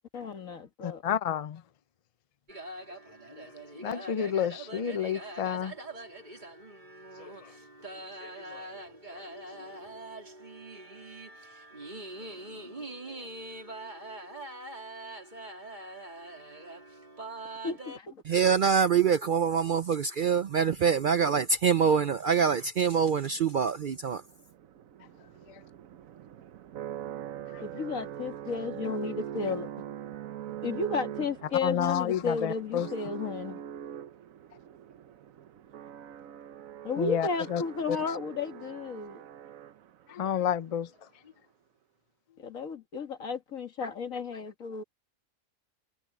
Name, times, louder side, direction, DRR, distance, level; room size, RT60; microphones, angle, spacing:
voice 1, 0.1-1.0 17.6-18.2 27.6-29.7 30.6-33.6 36.8-39.2 42.4-44.8, left 4 dB, 85° left, 2.2 m, -33 dB
voice 2, 0.8-1.6 3.3-5.7 7.2-7.5 8.0-8.7 9.1-9.7 12.5-12.8 13.1-13.2 25.5-25.6 27.5-27.6 31.6-32.9 37.0-37.6 37.9-38.0 40.1-40.9, left 9 dB, 45° left, 0.5 m, -31 dB
sound 1, 2.5-18.0, right 2 dB, 35° right, 3.3 m, -43 dB
voice 3, 18.2-24.2, right 6 dB, 55° right, 0.5 m, -25 dB
sound 2, 23.9-40.2, right 10 dB, 85° right, 1.2 m, -42 dB
omnidirectional pair, 1.4 m